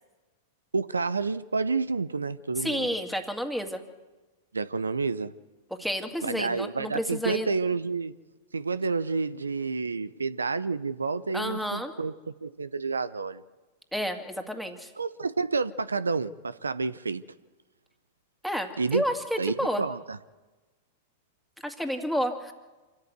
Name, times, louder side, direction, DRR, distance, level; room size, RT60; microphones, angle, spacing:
voice 1, 0.7-2.9 4.5-5.3 6.2-8.1 8.5-12.1 12.4-13.4 15.0-17.2 18.8-19.0 19.4-20.2, right 4 dB, 90° right, 15 dB, 0.6 m, -29 dB
voice 2, 2.6-3.8 5.7-7.5 11.3-11.9 13.9-14.9 18.4-19.8 21.6-22.5, equal, ahead, 5 dB, 2.2 m, -30 dB
26.5 x 14.0 x 8.1 m, 1.2 s
hypercardioid pair, 100°, 0 cm